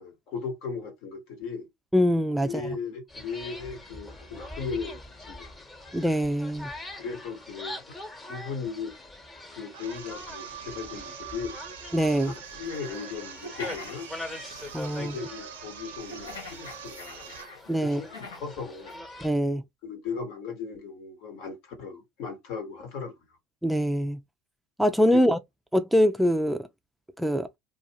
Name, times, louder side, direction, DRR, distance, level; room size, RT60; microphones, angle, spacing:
voice 1, 0.0-1.7 2.4-5.0 5.3-5.6 7.0-8.0 8.3-9.0 9.5-11.6 12.2-14.1 15.0-17.3 17.8-18.9 19.8-23.2 25.1-25.2, left 5 dB, 65° left, 1.1 m, -37 dB
voice 2, 1.9-2.6 5.9-6.7 11.9-12.3 14.7-15.2 17.7-18.0 19.2-19.6 23.6-24.2 24.8-25.4 25.7-26.7 27.2-27.5, equal, ahead, 0.3 m, -23 dB
sound 1, 3.1-19.3, left 2 dB, 20° left, 1.0 m, -43 dB
sound 2, 9.7-17.6, right 9 dB, 85° right, 0.5 m, -44 dB
Horrifying Laughing, 11.9-15.2 16.0-18.5 18.9-19.0, left 3 dB, 85° left, 0.8 m, -44 dB
2.4 x 2.3 x 2.8 m
hypercardioid pair, 80°, 0 cm